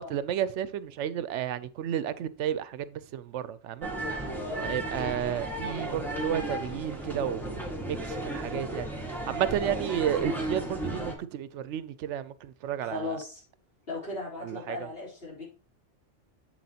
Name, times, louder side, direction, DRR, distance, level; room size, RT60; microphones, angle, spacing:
voice 1, 0.0-3.9 4.6-7.5 7.8-8.9 9.3-13.2 14.4-14.9, right 10 dB, 75° right, 0.9 m, -32 dB
sound 1, 3.8-11.1, right 1 dB, ahead, 1.5 m, -34 dB
voice 2, 4.2-5.1 9.6-9.8 12.8-13.4 13.9-15.4, left 3 dB, 50° left, 3.8 m, -38 dB
7.9 x 7.2 x 2.8 m
omnidirectional pair, 1.2 m